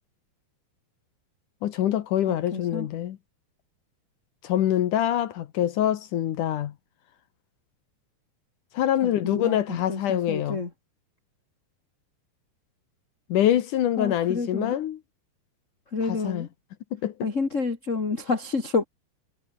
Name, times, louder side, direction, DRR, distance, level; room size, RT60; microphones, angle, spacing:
voice 1, 1.6-3.2 4.4-6.7 8.7-10.6 13.3-15.0 16.1-16.5 16.9-17.3, left 11 dB, 65° left, 2.0 m, -25 dB
voice 2, 2.3-2.9 9.0-10.7 14.0-14.8 15.9-16.5 17.2-18.8, left 4 dB, 30° left, 1.5 m, -29 dB
omnidirectional pair, 5.2 m